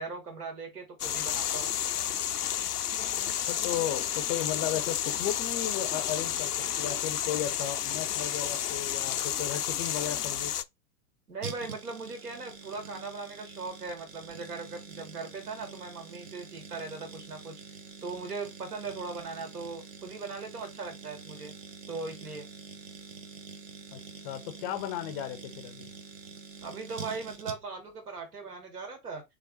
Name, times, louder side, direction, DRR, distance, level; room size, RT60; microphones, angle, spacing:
voice 1, 0.0-1.7 11.3-21.5 21.9-22.5 26.6-29.2, right 4 dB, 75° right, 2.5 m, -39 dB
sound 1, 1.0-10.6, left 10 dB, 85° left, 0.5 m, -31 dB
voice 2, 3.4-10.6 23.9-25.9, left 10 dB, 25° left, 0.5 m, -35 dB
sound 2, 11.4-27.9 28.2-28.3, right 5 dB, 55° right, 1.2 m, -46 dB
3.6 x 3.5 x 4.1 m
figure-of-eight pair, 105°, 45 cm